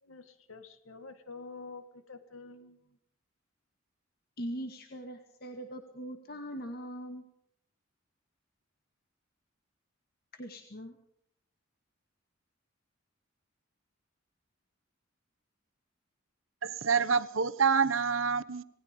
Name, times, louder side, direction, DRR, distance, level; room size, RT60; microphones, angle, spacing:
voice 1, 0.0-3.0, left 4 dB, 80° left, 2.0 m, -48 dB
voice 2, 4.4-7.2 10.3-11.0, equal, 50° left, 2.0 m, -41 dB
voice 3, 16.6-18.6, right 5 dB, 75° right, 1.2 m, -27 dB
27.0 x 19.5 x 5.3 m
head